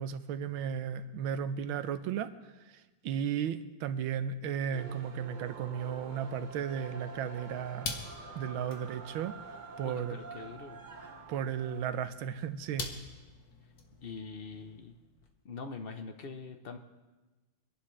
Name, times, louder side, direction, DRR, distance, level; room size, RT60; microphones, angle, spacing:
voice 1, 0.0-2.3 3.0-7.9 8.3-9.3 9.8-10.2 11.3-12.9, right 8 dB, 90° right, 11 dB, 1.5 m, -34 dB
sound 1, 4.7-11.9, right 3 dB, 70° right, 0.4 m, -47 dB
sound 2, 4.9-15.3, left 4 dB, 50° left, 1.6 m, -47 dB
voice 2, 9.8-10.8 14.0-14.9 15.4-16.8, left 4 dB, 70° left, 5 dB, 0.5 m, -43 dB
25.0 x 11.5 x 3.2 m, 1.2 s
omnidirectional pair, 2.2 m